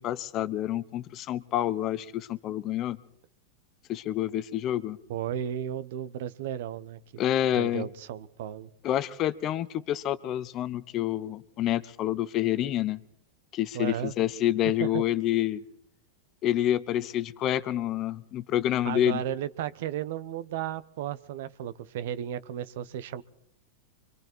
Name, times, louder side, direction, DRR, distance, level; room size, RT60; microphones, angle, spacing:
voice 1, 0.0-3.0 3.9-5.0 7.2-7.9 8.8-13.0 13.5-15.6 16.4-19.2, left 12 dB, 35° left, 15 dB, 0.9 m, -28 dB
voice 2, 5.1-7.0 7.5-8.7 13.7-14.1 14.8-15.0 18.8-23.2, right 10 dB, 65° right, 15 dB, 0.9 m, -34 dB
24.5 x 23.5 x 4.6 m, 0.72 s
supercardioid pair, 140°, 0 cm